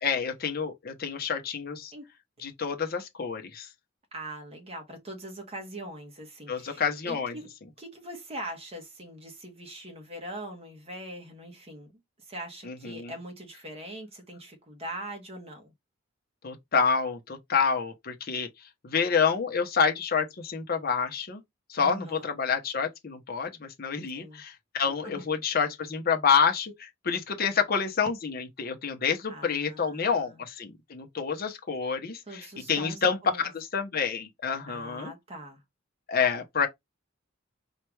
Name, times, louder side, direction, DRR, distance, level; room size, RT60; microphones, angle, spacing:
voice 1, 0.0-1.9 2.4-3.7 6.5-7.4 12.6-13.1 16.4-18.5 18.8-21.4 21.7-33.2 33.4-35.1 36.1-36.7, left 6 dB, 50° left, 0.8 m, -28 dB
voice 2, 4.1-7.5 7.8-15.7 21.8-22.4 24.1-24.4 25.0-25.2 29.3-30.4 32.3-33.4 34.7-35.6, right 1 dB, 30° right, 1.3 m, -42 dB
4.4 x 2.4 x 3.1 m
head